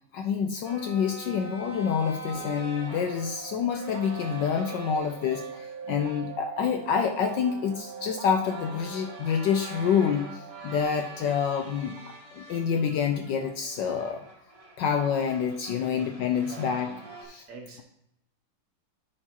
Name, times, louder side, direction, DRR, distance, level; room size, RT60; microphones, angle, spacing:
voice 1, 0.1-12.0 12.3-14.2 14.8-16.9 17.2-17.4, left 7 dB, 70° left, 5 dB, 1.1 m, -27 dB
sound 1, 0.6-6.3 6.8-6.9 7.1-17.2, right 2 dB, 20° right, 1.3 m, -45 dB
sound 2, 2.3-10.8, right 7 dB, 85° right, 1.5 m, -42 dB
voice 2, 16.5-17.8, right 4 dB, 55° right, 0 dB, 1.8 m, -46 dB
14.0 x 4.8 x 2.9 m, 0.81 s
omnidirectional pair, 2.3 m